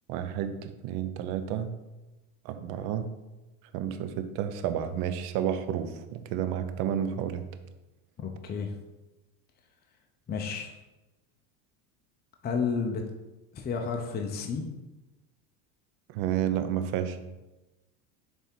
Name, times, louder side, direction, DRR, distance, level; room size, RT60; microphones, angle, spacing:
voice 1, 0.1-1.7 2.4-3.1 3.7-7.4 16.1-17.2, right 9 dB, 65° right, 9 dB, 0.8 m, -31 dB
voice 2, 8.2-8.7 10.3-10.7 12.4-13.0 13.5-14.6, left 5 dB, 25° left, 2 dB, 0.7 m, -31 dB
7.0 x 3.6 x 4.5 m, 1.1 s
supercardioid pair, 125°, 42 cm